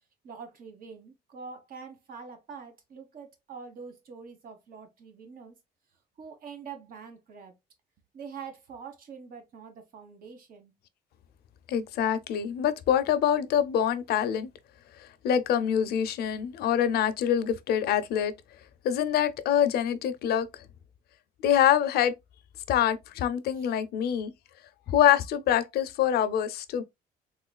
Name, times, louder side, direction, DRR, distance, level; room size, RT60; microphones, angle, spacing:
voice 1, 0.2-5.6 6.2-7.5 8.1-10.7 23.5-23.7, right 5 dB, 60° right, 1.2 m, -45 dB
voice 2, 11.7-14.5 15.0-18.3 18.8-20.5 21.4-22.1 22.7-24.3 24.9-26.8, left 9 dB, 70° left, 0.6 m, -25 dB
3.5 x 3.1 x 2.2 m
cardioid pair, 110°, 17 cm